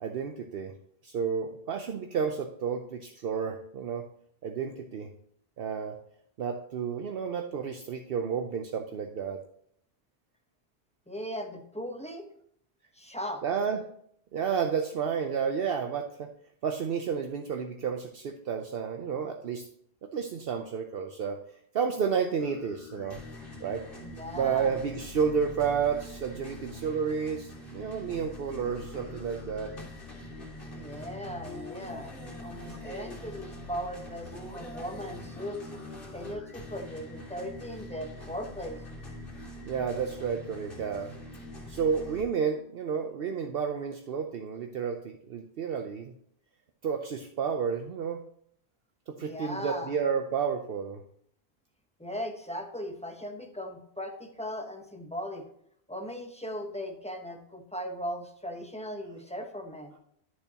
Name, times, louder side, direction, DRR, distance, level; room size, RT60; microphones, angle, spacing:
voice 1, 0.0-0.7 1.0-4.0 4.4-5.1 5.6-6.0 6.4-9.4 13.4-13.8 14.3-16.3 16.6-19.6 20.0-23.2 23.6-23.9 24.3-29.7 39.6-41.1 41.7-46.1 46.8-48.2 49.1-51.0, right 6 dB, 65° right, 5 dB, 0.8 m, -31 dB
voice 2, 11.1-12.3 12.9-13.4 24.0-25.1 30.7-32.1 32.4-35.6 36.1-38.8 49.2-50.0 52.0-55.5 55.9-59.9, equal, 5° left, 3 dB, 0.9 m, -38 dB
sound 1, 22.4-42.2, left 1 dB, 55° left, 2.2 m, -44 dB
11.0 x 6.8 x 2.9 m, 0.68 s
omnidirectional pair, 1.1 m